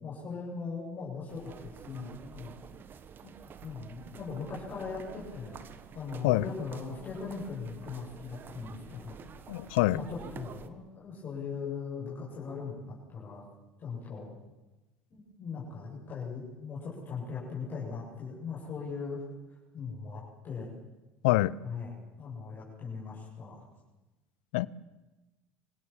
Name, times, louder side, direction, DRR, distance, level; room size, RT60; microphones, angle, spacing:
voice 1, 0.0-2.5 3.2-3.3 3.6-5.6 5.9-9.2 9.6-13.5 13.8-14.3 15.1-19.2 19.7-20.7 21.6-23.6, left 5 dB, 40° left, -5 dB, 7.8 m, -39 dB
sound 1, 1.3-10.7, right 7 dB, 40° right, 1.6 m, -49 dB
voice 2, 9.5-10.0 21.2-21.6 24.5-24.7, left 19 dB, 80° left, 22 dB, 0.6 m, -25 dB
26.0 x 17.0 x 7.6 m, 1.1 s
hypercardioid pair, 80°, 5 cm